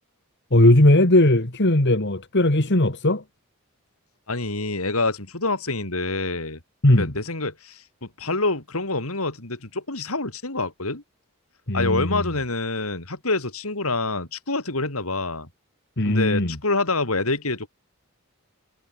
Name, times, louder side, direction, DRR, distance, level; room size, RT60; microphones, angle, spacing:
voice 1, 0.5-3.2 6.8-7.1 11.7-12.3 16.0-16.6, left 1 dB, 55° left, 2.4 m, -18 dB
voice 2, 4.3-6.6 7.0-11.0 11.7-15.5 16.0-17.7, left 3 dB, 85° left, 4.7 m, -26 dB
head